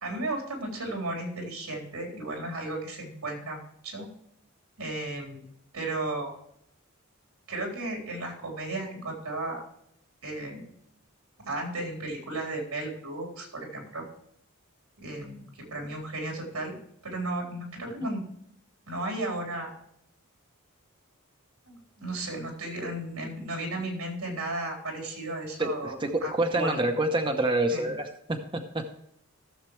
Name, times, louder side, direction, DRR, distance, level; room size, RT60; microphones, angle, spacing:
voice 1, 0.0-4.1 4.8-5.4 5.7-6.3 7.5-9.6 10.2-10.6 11.4-14.0 15.0-16.7 17.0-18.2 18.9-19.7 21.7-26.8 27.7-27.9, right 2 dB, 90° right, 0 dB, 3.9 m, -34 dB
voice 2, 25.6-28.8, right 1 dB, 25° right, 4 dB, 0.8 m, -27 dB
15.0 x 7.4 x 3.2 m, 0.73 s
head